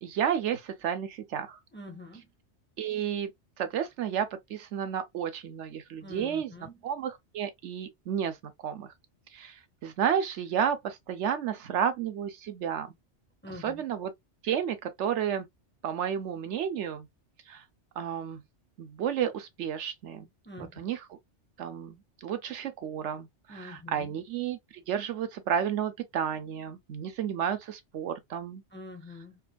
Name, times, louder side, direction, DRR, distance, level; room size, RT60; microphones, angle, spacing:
voice 1, 0.0-1.6 2.8-3.3 3.6-6.5 6.8-8.9 9.3-12.9 13.6-14.1 14.4-15.5 15.8-17.1 17.5-17.6 18.0-18.4 18.8-20.3 20.6-21.0 21.6-24.6 24.9-28.6, right 8 dB, 85° right, 1.0 m, -32 dB
voice 2, 1.7-2.3 6.0-6.8 13.4-13.8 20.5-20.9 23.5-24.1 28.7-29.4, left 2 dB, 15° left, 0.6 m, -45 dB
4.2 x 2.4 x 2.3 m
omnidirectional pair, 1.2 m